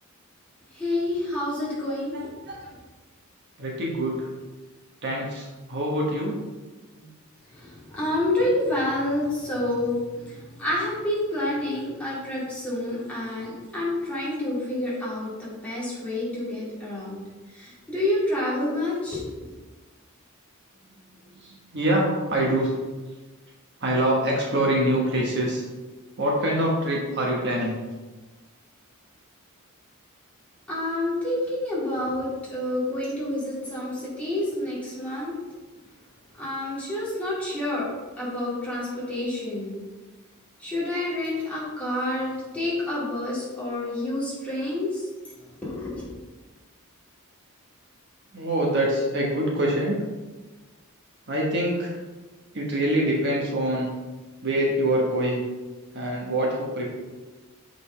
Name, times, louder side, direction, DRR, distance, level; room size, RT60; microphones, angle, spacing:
voice 1, 0.7-2.2 7.5-15.3 15.6-17.2 17.5-19.2 30.7-35.4 36.4-37.9 38.2-39.8 40.6-45.1 45.6-46.1, left 1 dB, 5° left, -8 dB, 2.2 m, -28 dB
voice 2, 2.1-2.6 3.6-4.3 5.0-6.4 6.9-7.1 21.3-22.8 23.8-25.6 26.2-27.7 48.3-50.0 51.3-51.9 52.5-53.9 54.4-55.4 55.9-56.9, right 1 dB, 55° right, -2 dB, 1.2 m, -25 dB
6.7 x 5.2 x 3.3 m, 1.2 s
head